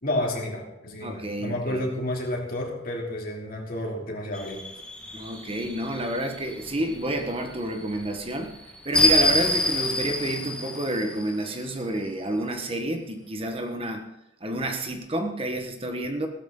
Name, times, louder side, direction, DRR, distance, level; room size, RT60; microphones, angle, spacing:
voice 1, 0.0-4.7, left 1 dB, 50° left, 0 dB, 2.8 m, -30 dB
voice 2, 1.0-1.8 5.1-8.5 8.8-14.1 14.4-16.3, right 1 dB, 30° right, 5 dB, 1.2 m, -29 dB
sound 1, 4.3-11.8, equal, 5° left, 1.5 m, -28 dB
16.0 x 13.0 x 3.8 m, 0.85 s
head